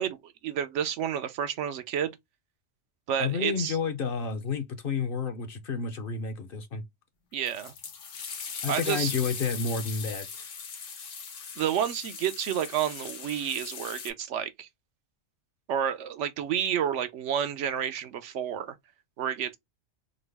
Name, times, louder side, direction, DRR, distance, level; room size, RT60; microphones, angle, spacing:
voice 1, 0.0-2.2 3.1-3.8 7.3-7.7 8.7-9.1 11.6-14.7 15.7-18.8 19.2-19.6, right 9 dB, 75° right, 0.9 m, -30 dB
voice 2, 3.2-6.8 8.6-10.4, left 5 dB, 55° left, 0.8 m, -30 dB
sound 1, 7.5-14.1, left 6 dB, 80° left, 1.2 m, -39 dB
3.9 x 2.0 x 3.2 m
omnidirectional pair, 1.3 m